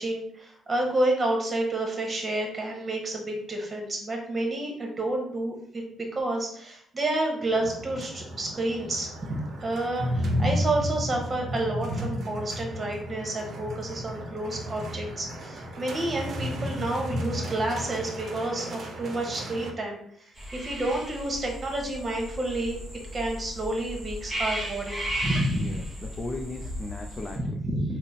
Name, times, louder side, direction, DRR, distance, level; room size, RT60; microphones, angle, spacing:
voice 1, 0.0-5.8 6.1-22.8 23.1-25.7 27.4-28.0, right 1 dB, 35° right, 2 dB, 1.1 m, -30 dB
sound 1, 7.4-19.7, equal, 55° right, 0.6 m, -33 dB
sound 2, 20.4-27.4, equal, 15° right, 1.3 m, -35 dB
voice 2, 25.5-27.6, left 2 dB, 35° left, 1 dB, 0.5 m, -37 dB
3.8 x 2.1 x 4.0 m, 0.67 s
cardioid pair, 90°, 0 cm